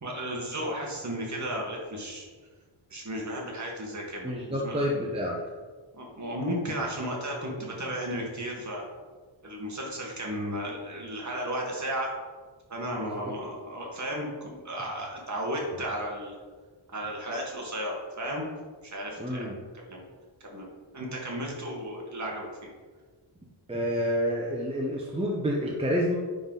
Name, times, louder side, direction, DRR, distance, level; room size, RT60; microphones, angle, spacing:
voice 1, 0.0-2.3 2.9-4.9 5.9-8.8 9.4-12.1 12.7-16.3 16.9-18.5 18.8-19.5 19.8-20.0 20.4-20.7 20.9-22.7, equal, 35° right, -1 dB, 1.6 m, -34 dB
voice 2, 4.2-5.4 13.0-13.4 19.2-19.5 23.7-26.2, equal, 10° right, -3 dB, 0.8 m, -29 dB
9.3 x 4.0 x 3.9 m, 1.5 s
wide cardioid pair, 155°, 48 cm